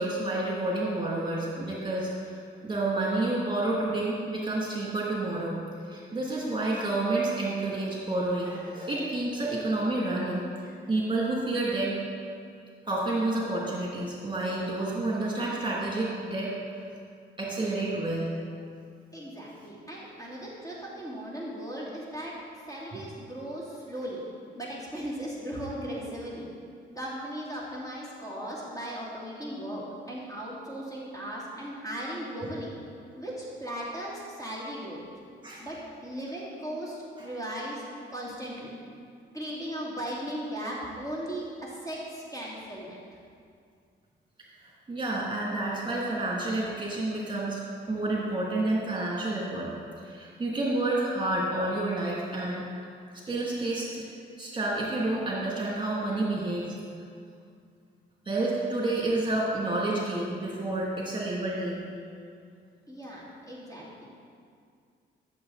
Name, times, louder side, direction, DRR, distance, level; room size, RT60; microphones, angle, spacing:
voice 1, 0.0-5.6 5.8-12.0 12.8-16.8 17.4-18.3 22.9-23.0 35.4-35.7 37.2-37.3 44.6-47.6 47.9-49.7 50.0-52.6 53.3-54.1 54.4-56.7 58.2-61.9, right 2 dB, 25° right, -5 dB, 2.7 m, -29 dB
voice 2, 19.1-22.3 22.7-24.2 24.5-26.5 26.9-32.7 33.1-35.0 35.6-35.8 36.0-37.8 38.1-38.7 39.3-43.0 62.9-64.1, equal, 15° left, -6 dB, 2.9 m, -37 dB
13.5 x 7.5 x 4.2 m, 2.3 s
cardioid pair, 90°, 20 cm